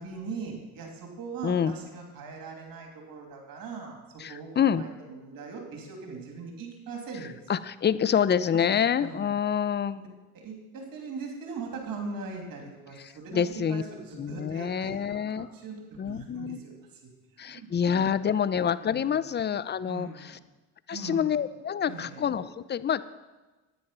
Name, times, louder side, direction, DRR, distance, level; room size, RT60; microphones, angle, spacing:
voice 1, 0.0-7.4 8.6-9.3 9.9-10.1 10.3-18.3 18.8-19.2 19.8-20.4 20.9-21.4 21.9-22.2, right 4 dB, 60° right, 1 dB, 2.9 m, -41 dB
voice 2, 1.4-1.7 4.2-4.8 7.5-10.1 13.3-13.8 14.2-15.5 16.0-16.6 17.4-20.4 20.9-23.1, left 8 dB, 30° left, 15 dB, 0.6 m, -27 dB
10.0 x 9.3 x 5.7 m, 1.2 s
supercardioid pair, 65°, 38 cm